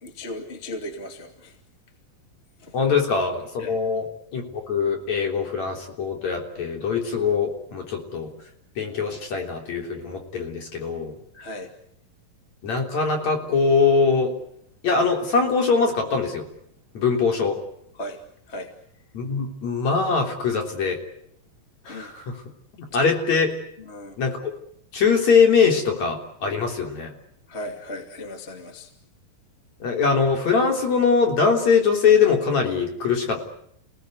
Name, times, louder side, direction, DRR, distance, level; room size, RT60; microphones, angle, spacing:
voice 1, 0.0-1.5 2.6-2.7 3.6-3.8 11.3-11.7 18.0-18.2 18.5-18.7 21.9-22.1 22.9-23.1 23.8-24.1 27.5-28.9, left 1 dB, 20° left, 5 dB, 2.4 m, -36 dB
voice 2, 2.7-8.3 8.8-11.1 12.6-14.3 14.8-16.5 16.9-17.6 19.1-21.0 21.9-22.4 22.7-23.5 24.2-24.4 24.9-27.1 29.8-33.4, left 5 dB, 50° left, 3 dB, 4.7 m, -22 dB
30.0 x 18.0 x 9.6 m, 0.72 s
omnidirectional pair, 4.1 m